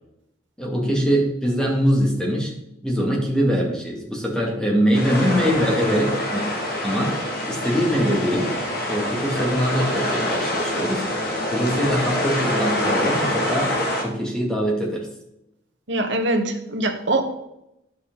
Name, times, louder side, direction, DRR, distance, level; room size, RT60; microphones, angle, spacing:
voice 1, 0.6-2.5 2.8-6.5 6.8-7.2 7.5-8.5 8.9-11.0 11.5-13.7 14.0-15.1, equal, 5° left, -1 dB, 2.4 m, -22 dB
sound 1, 4.9-14.0, left 1 dB, 55° left, 2.1 m, -25 dB
voice 2, 15.9-17.3, right 2 dB, 70° right, 3 dB, 1.5 m, -23 dB
10.5 x 7.8 x 4.0 m, 0.84 s
head